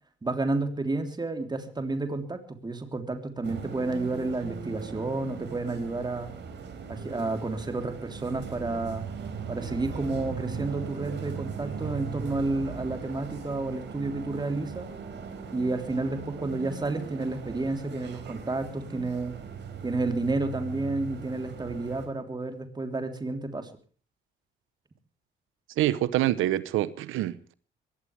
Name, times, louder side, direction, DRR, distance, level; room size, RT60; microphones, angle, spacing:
voice 1, 0.2-6.3 6.9-9.0 9.5-14.9 15.5-19.3 19.8-23.7, right 2 dB, 20° right, 3.3 m, -31 dB
sound 1, 3.4-22.1, right 6 dB, 65° right, 4.2 m, -39 dB
voice 2, 25.8-27.5, right 14 dB, 90° right, 0.9 m, -26 dB
22.5 x 17.5 x 3.3 m
cardioid pair, 90°, 20 cm